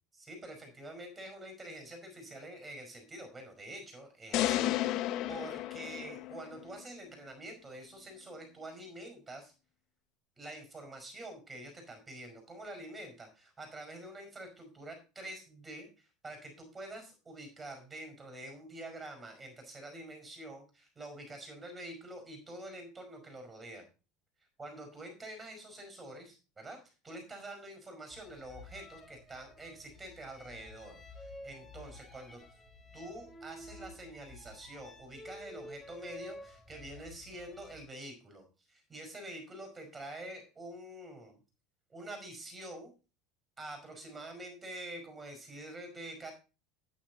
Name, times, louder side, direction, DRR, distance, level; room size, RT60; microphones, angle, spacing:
voice 1, 0.1-5.0 5.3-9.5 10.4-15.9 16.2-23.8 24.6-32.4 32.9-41.4 41.9-42.9 43.6-46.3, right 1 dB, 20° right, 6 dB, 5.2 m, -46 dB
sound 1, 4.3-6.6, left 14 dB, 60° left, 0.7 m, -32 dB
sound 2, 28.1-37.8, left 1 dB, 20° left, 5.6 m, -51 dB
9.6 x 8.8 x 4.1 m, 0.33 s
supercardioid pair, 100°, 0 cm